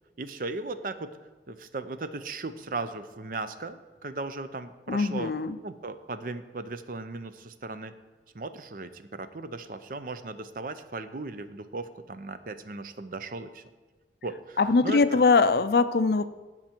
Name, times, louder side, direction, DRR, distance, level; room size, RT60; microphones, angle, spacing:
voice 1, 0.2-1.2 1.5-5.3 5.6-7.9 8.3-13.6 14.2-15.2, right 3 dB, 50° right, 11 dB, 0.6 m, -37 dB
voice 2, 4.9-5.6 14.6-16.3, left 4 dB, 60° left, 13 dB, 0.4 m, -22 dB
16.5 x 5.9 x 4.4 m, 1.2 s
head